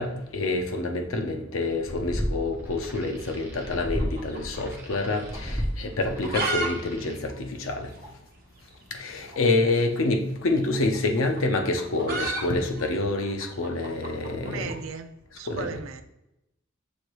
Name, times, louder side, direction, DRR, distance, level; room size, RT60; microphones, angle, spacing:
voice 1, 0.0-7.9 8.9-14.7 15.5-15.8, left 2 dB, 75° left, 4 dB, 0.7 m, -27 dB
sound 1, 1.6-7.2, equal, 10° right, 0.6 m, -34 dB
sound 2, 3.7-5.1 5.3-5.4 6.0-6.7 6.9-7.0 7.3-7.4 8.0-8.1 9.3-9.4 10.6-14.8, right 3 dB, 45° right, 1.1 m, -32 dB
voice 2, 14.4-16.0, right 6 dB, 75° right, 8 dB, 0.4 m, -37 dB
6.4 x 2.6 x 3.1 m, 0.87 s
head